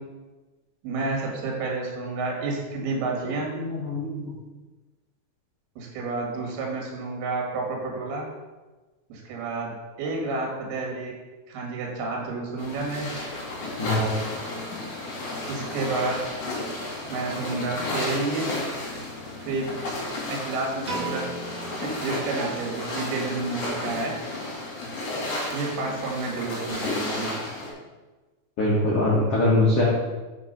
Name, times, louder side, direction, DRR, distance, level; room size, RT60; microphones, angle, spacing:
voice 1, 0.8-3.5 5.8-8.3 9.1-9.7 10.0-11.1 11.5-13.1 13.8-14.3 15.5-16.2 17.1-18.5 19.4-19.7 20.3-21.2 21.8-24.1 25.5-27.3, right 3 dB, 65° right, -1 dB, 3.6 m, -30 dB
voice 2, 3.5-4.3 13.8-14.0 28.6-29.8, left 2 dB, 75° left, -5 dB, 1.3 m, -22 dB
sound 1, 12.6-27.7, left 2 dB, 50° left, 3.2 m, -33 dB
Piano, 20.9-23.1, right 3 dB, 85° right, 1.2 m, -37 dB
6.8 x 6.0 x 5.4 m, 1.2 s
omnidirectional pair, 5.2 m